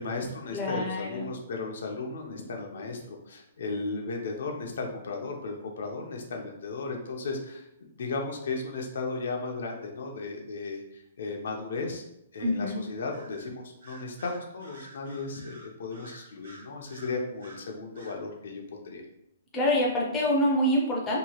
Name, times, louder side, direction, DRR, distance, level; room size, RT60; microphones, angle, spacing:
voice 1, 0.0-7.7 8.0-12.0 12.3-19.0, left 3 dB, 65° left, 1 dB, 0.5 m, -35 dB
voice 2, 0.5-1.3 12.4-12.8 19.5-21.2, left 1 dB, 10° left, -4 dB, 0.4 m, -26 dB
Bird vocalization bird call bird song, 13.1-13.5 13.8-17.6 17.9-18.2, right 2 dB, 70° right, 1.1 m, -50 dB
2.8 x 2.3 x 2.8 m, 0.81 s
hypercardioid pair, 170°, 0 cm